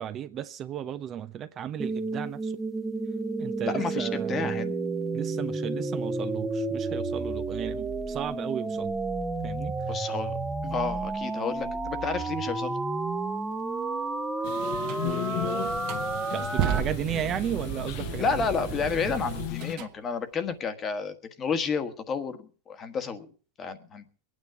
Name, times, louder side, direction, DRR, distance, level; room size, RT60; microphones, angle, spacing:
voice 1, 0.0-2.5 3.4-4.6 5.1-9.0 9.4-10.0 10.6-10.8 15.0-15.8 16.3-18.4, right 10 dB, 30° right, 0.7 m, -35 dB
sound 1, 1.8-16.8, right 3 dB, 10° right, 1.0 m, -31 dB
voice 2, 3.6-4.7 9.9-10.4 10.7-12.8 18.2-23.3 23.6-24.0, left 5 dB, 25° left, 1.4 m, -31 dB
sound 2, 14.4-19.7, left 17 dB, 55° left, 0.7 m, -36 dB
sound 3, 14.9-15.0 15.6-19.9, right 9 dB, 45° right, 1.6 m, -33 dB
22.5 x 9.4 x 4.7 m
supercardioid pair, 135°, 0 cm